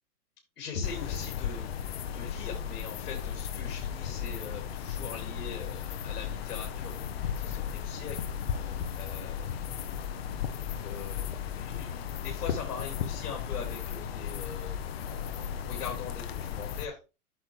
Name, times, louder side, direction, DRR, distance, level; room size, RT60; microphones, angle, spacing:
voice 1, 0.6-1.7 2.1-9.5 10.6-17.0, left 6 dB, 70° left, 1 dB, 2.9 m, -42 dB
sound 1, 0.8-16.9, left 8 dB, 40° left, 0.8 m, -35 dB
8.5 x 6.4 x 3.2 m, 0.30 s
hypercardioid pair, 160°, 46 cm